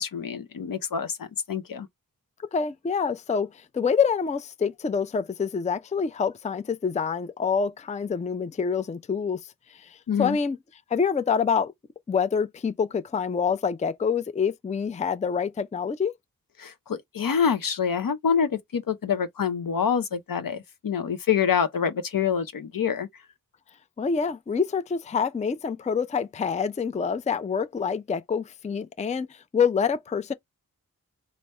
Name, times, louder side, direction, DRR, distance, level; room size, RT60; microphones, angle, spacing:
voice 1, 0.0-1.9 10.1-10.4 16.6-23.1, left 7 dB, 70° left, 0.7 m, -26 dB
voice 2, 2.5-10.6 10.9-11.7 12.1-16.1 24.0-30.3, left 6 dB, 20° left, 0.4 m, -26 dB
3.4 x 2.0 x 4.2 m
cardioid pair, 55°, 34 cm